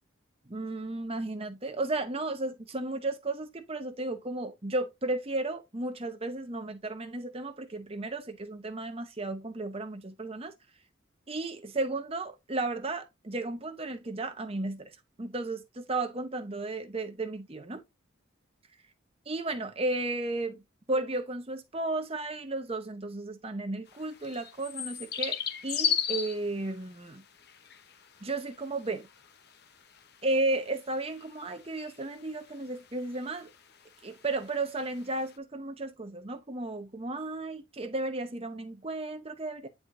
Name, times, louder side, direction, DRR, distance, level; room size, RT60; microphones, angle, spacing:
voice 1, 0.5-10.5 11.3-17.8 19.3-20.6 20.9-25.4 25.6-27.2 28.2-29.1 30.2-33.5 34.0-39.7, right 2 dB, 30° right, 0.8 m, -34 dB
sound 1, 23.9-35.3, left 8 dB, 50° left, 0.9 m, -37 dB
9.2 x 4.7 x 2.6 m
head